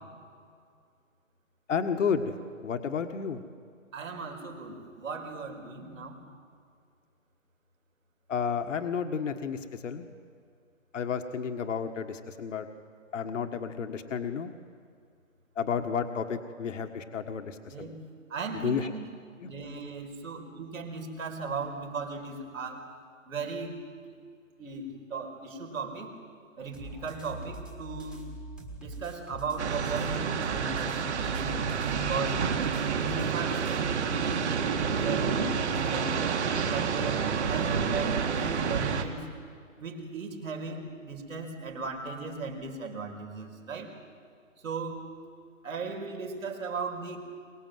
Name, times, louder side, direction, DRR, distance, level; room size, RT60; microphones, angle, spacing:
voice 1, 1.7-2.3 2.6-3.4 8.3-10.0 10.9-12.7 13.1-14.5 15.6-17.9 18.6-18.9 19.4-19.5, left 6 dB, 65° left, 6 dB, 1.6 m, -31 dB
voice 2, 3.9-6.2 17.7-18.0 18.3-19.1 19.4-22.9 23.3-23.8 24.1-24.2 24.6-26.1 26.6-28.3 28.8-32.4 32.9-36.2 36.7-39.2 39.8-43.9 44.6-45.1 45.6-47.2, right 4 dB, 75° right, 3 dB, 4.7 m, -37 dB
sound 1, 26.7-30.1 30.4-33.8, right 2 dB, ahead, 1.5 m, -43 dB
sound 2, 29.6-39.0, right 6 dB, 55° right, 2.3 m, -29 dB
23.5 x 21.0 x 7.8 m, 2.2 s
hypercardioid pair, 165°, 40 cm